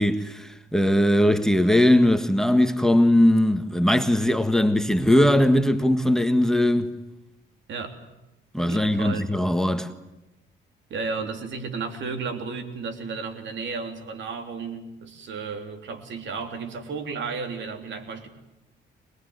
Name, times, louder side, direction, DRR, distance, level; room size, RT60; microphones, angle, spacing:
voice 1, 0.0-6.9 8.5-9.9, left 1 dB, ahead, 1.6 m, -20 dB
voice 2, 8.7-9.3 10.9-18.3, right 4 dB, 70° right, 3.4 m, -33 dB
24.0 x 21.5 x 9.5 m
cardioid pair, 90°, 20 cm